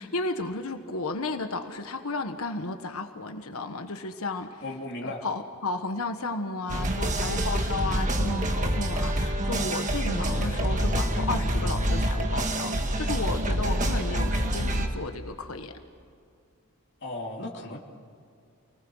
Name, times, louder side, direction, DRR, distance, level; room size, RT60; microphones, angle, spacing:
voice 1, 0.0-4.6 5.0-12.7 13.0-15.7, left 3 dB, 80° left, 6 dB, 1.4 m, -33 dB
voice 2, 4.6-5.3 17.0-17.8, left 2 dB, 50° left, -1 dB, 3.1 m, -35 dB
sound 1, 6.7-14.9, right 1 dB, 35° right, 1.8 m, -26 dB
29.0 x 19.5 x 6.4 m, 2.4 s
head